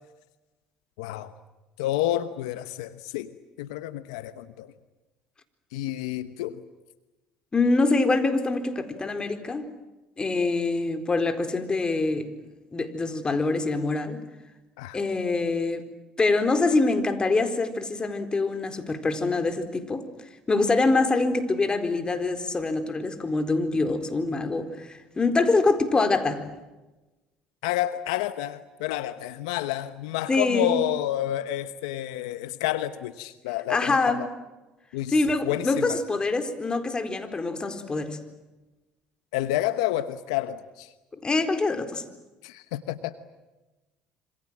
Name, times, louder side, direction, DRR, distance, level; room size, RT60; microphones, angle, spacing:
voice 1, 1.0-1.3 1.8-3.3 3.6-4.7 5.7-6.6 14.8-15.0 27.6-34.3 34.9-35.1 35.4-36.0 39.3-40.9 42.4-43.3, left 13 dB, 85° left, 12 dB, 1.0 m, -29 dB
voice 2, 7.5-9.7 10.2-12.3 12.7-14.2 14.9-15.8 16.2-20.1 20.5-26.4 30.3-30.7 33.7-34.3 35.1-38.2 41.2-42.0, left 3 dB, 25° left, 8 dB, 4.2 m, -25 dB
27.0 x 26.5 x 7.5 m, 1.1 s
hypercardioid pair, 70°, 3 cm